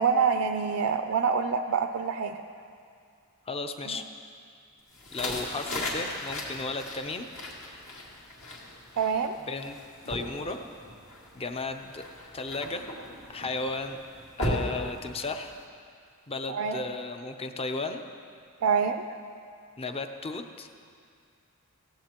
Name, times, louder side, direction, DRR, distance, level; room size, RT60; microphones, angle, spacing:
voice 1, 0.0-2.4 3.9-4.0 9.0-9.4 16.5-16.8 18.6-19.0, right 6 dB, 70° right, 6 dB, 0.5 m, -26 dB
voice 2, 3.5-4.0 5.1-7.3 9.5-9.8 10.1-10.6 11.3-12.0 12.3-12.9 13.3-14.0 14.4-15.5 16.3-18.0 19.8-20.7, left 3 dB, 25° left, 6 dB, 0.6 m, -34 dB
sound 1, 4.9-15.6, left 1 dB, 65° left, 2.3 m, -37 dB
17.5 x 15.5 x 3.0 m, 2.3 s
head